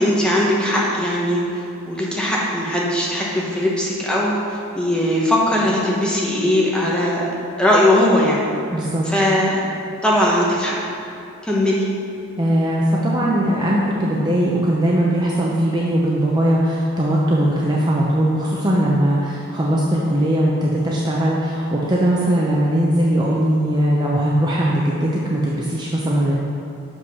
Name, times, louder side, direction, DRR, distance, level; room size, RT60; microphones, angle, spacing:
voice 1, 0.0-1.4 1.9-7.2 7.6-8.5 9.0-9.6 10.0-10.8 11.4-11.8, left 1 dB, 5° left, -5 dB, 1.1 m, -19 dB
voice 2, 8.7-9.0 12.4-26.3, right 1 dB, 20° right, -4 dB, 0.6 m, -19 dB
6.3 x 5.3 x 5.5 m, 2.7 s
head